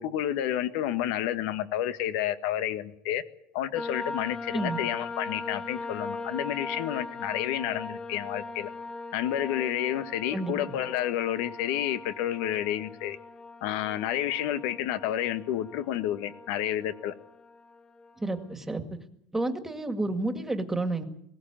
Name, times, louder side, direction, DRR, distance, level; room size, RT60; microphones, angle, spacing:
voice 1, 0.0-3.2 3.5-8.7 9.1-13.2 13.6-17.1, left 11 dB, 75° left, 10 dB, 1.7 m, -30 dB
sound 1, 3.8-18.5, left 3 dB, 20° left, 0.9 m, -40 dB
voice 2, 18.2-19.0 19.3-21.0, right 2 dB, 5° right, 7 dB, 2.0 m, -30 dB
21.5 x 17.5 x 9.0 m, 0.75 s
cardioid pair, 145°, 5 cm